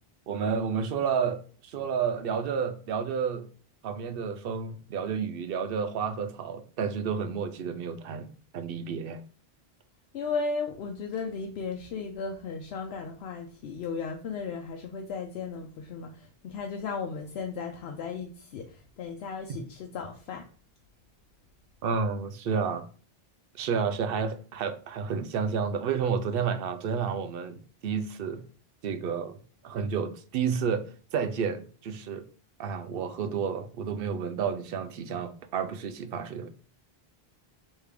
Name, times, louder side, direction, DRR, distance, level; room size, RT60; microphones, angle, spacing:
voice 1, 0.3-3.5 3.8-8.3 8.5-9.2 19.5-19.6 21.8-22.9 23.6-28.4 28.8-32.3 32.6-36.5, right 6 dB, 70° right, 0.7 m, -31 dB
voice 2, 10.1-20.4, left 5 dB, 85° left, 0.8 m, -35 dB
3.4 x 3.2 x 4.8 m
omnidirectional pair, 1.0 m